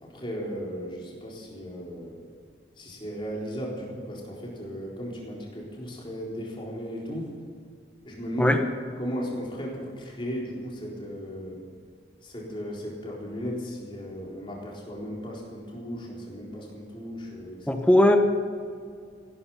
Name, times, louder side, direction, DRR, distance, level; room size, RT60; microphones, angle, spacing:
voice 1, 0.0-2.2 2.8-7.4 8.1-8.6 9.0-11.6 12.2-17.7, equal, 30° left, -3 dB, 4.0 m, -36 dB
voice 2, 17.7-18.2, left 1 dB, 5° left, 5 dB, 1.2 m, -18 dB
16.0 x 12.5 x 5.7 m, 2.1 s
head